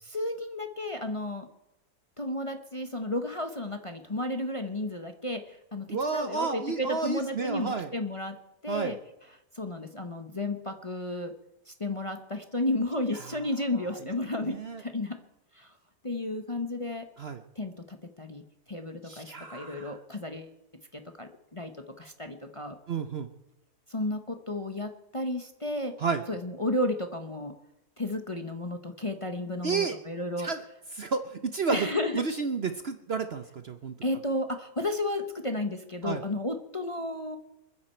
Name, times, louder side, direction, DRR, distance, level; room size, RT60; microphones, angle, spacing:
voice 1, 0.0-1.5 2.2-8.4 8.6-9.0 9.5-11.3 11.7-15.2 15.5-15.7 16.0-17.1 17.6-20.5 20.9-21.7 22.0-22.8 23.9-25.9 26.3-27.5 28.0-30.5 31.7-32.2 34.0-37.4, left 1 dB, 25° left, 6 dB, 0.9 m, -33 dB
voice 2, 5.9-7.9 8.7-8.9 14.4-14.8 17.2-17.4 19.0-19.9 22.9-23.3 26.0-26.2 29.6-30.0 30.4-30.6 30.9-31.9 32.1-33.9 36.0-36.2, right 5 dB, 50° right, 8 dB, 0.9 m, -31 dB
28.5 x 10.0 x 4.4 m, 0.93 s
omnidirectional pair, 1.6 m